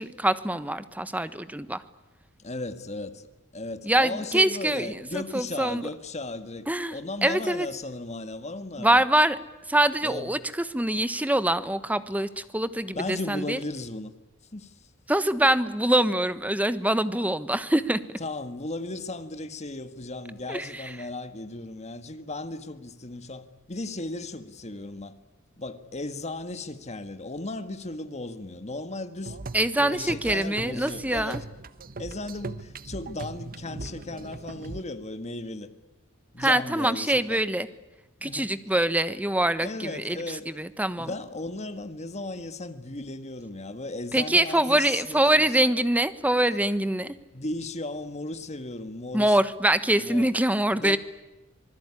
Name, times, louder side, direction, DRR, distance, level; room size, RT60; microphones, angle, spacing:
voice 1, 0.0-1.8 3.8-5.9 6.7-7.7 8.8-9.4 9.7-13.6 15.1-18.2 20.5-20.9 29.5-31.4 36.4-37.7 38.2-41.1 44.1-47.1 49.1-51.0, right 1 dB, 10° right, 1.2 m, -24 dB
voice 2, 2.4-9.0 10.0-10.3 12.9-14.1 14.5-14.8 18.2-25.1 25.6-29.4 29.7-31.4 32.0-35.7 36.3-37.4 38.2-38.5 39.6-40.5 41.0-45.6 47.3-49.4 50.0-50.3 50.8-51.0, left 2 dB, 35° left, 1.8 m, -36 dB
sound 1, 29.3-34.8, right 3 dB, 45° right, 1.0 m, -40 dB
26.0 x 20.5 x 9.9 m
head